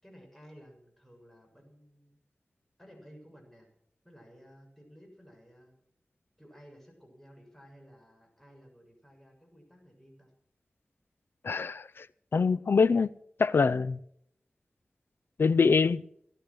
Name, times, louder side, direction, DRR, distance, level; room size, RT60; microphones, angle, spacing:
voice 1, 0.0-2.2 2.8-3.7 4.0-5.7 6.4-10.3, equal, 10° left, 6.7 m, -55 dB
voice 2, 11.4-12.1 12.3-13.1 13.4-14.0 15.4-16.0, left 5 dB, 75° left, 0.5 m, -24 dB
17.0 x 12.0 x 6.3 m
wide cardioid pair, 60°, 4 cm